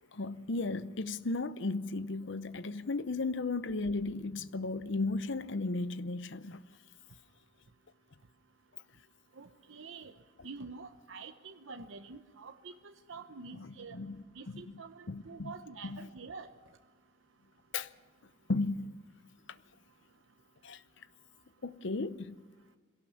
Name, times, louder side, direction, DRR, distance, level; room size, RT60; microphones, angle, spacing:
voice 1, 0.1-6.6 13.5-14.2 14.5-14.7 15.1-15.5 15.8-16.1 17.7-17.9 18.5-19.0 19.5-19.6 20.6-20.8 21.6-22.4, left 3 dB, 60° left, 0.7 m, -35 dB
voice 2, 9.3-10.1 10.4-14.0 14.3-16.5, right 4 dB, 70° right, 0.9 m, -47 dB
22.0 x 17.0 x 7.2 m
head